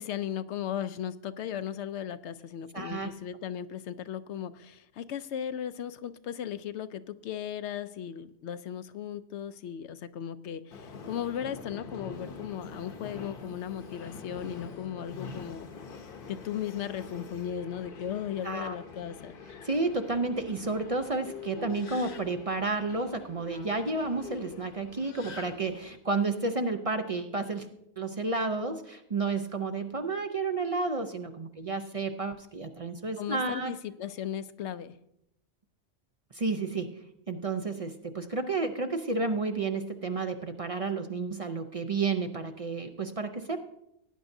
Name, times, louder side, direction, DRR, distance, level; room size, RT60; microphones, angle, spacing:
voice 1, 0.0-15.7 16.3-19.3 33.2-34.9, left 9 dB, 80° left, 13 dB, 0.9 m, -36 dB
voice 2, 2.7-3.1 18.4-18.8 19.6-27.7 28.0-33.7 36.3-43.6, right 3 dB, 40° right, 7 dB, 0.6 m, -31 dB
Subway metro underground, 10.7-26.0, left 5 dB, 55° left, 1.0 m, -45 dB
17.5 x 9.9 x 2.7 m, 0.80 s
omnidirectional pair, 1.2 m